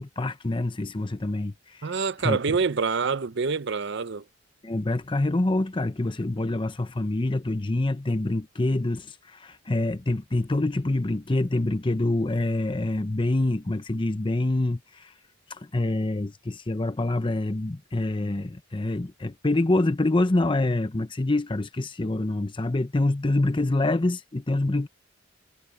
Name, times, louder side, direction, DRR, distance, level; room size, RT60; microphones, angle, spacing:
voice 1, 0.0-2.4 4.6-15.1 15.5-24.9, left 2 dB, 25° left, 0.7 m, -26 dB
voice 2, 1.8-4.2, right 5 dB, 60° right, 0.7 m, -26 dB
head